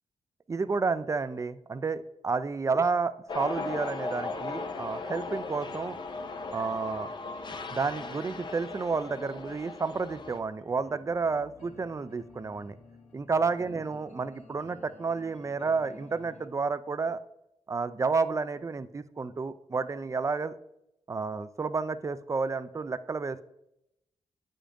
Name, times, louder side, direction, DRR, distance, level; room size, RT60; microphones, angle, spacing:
voice 1, 0.5-6.0 6.5-7.1 7.7-12.8 13.1-17.2 17.7-20.5 21.1-23.4, right 4 dB, 25° right, 13 dB, 0.3 m, -31 dB
sound 1, 3.3-10.4, left 3 dB, 40° left, 0.5 m, -37 dB
sound 2, 3.7-16.5, left 3 dB, 75° left, 1.3 m, -55 dB
8.7 x 5.1 x 2.5 m, 0.84 s
cardioid pair, 75°, 12 cm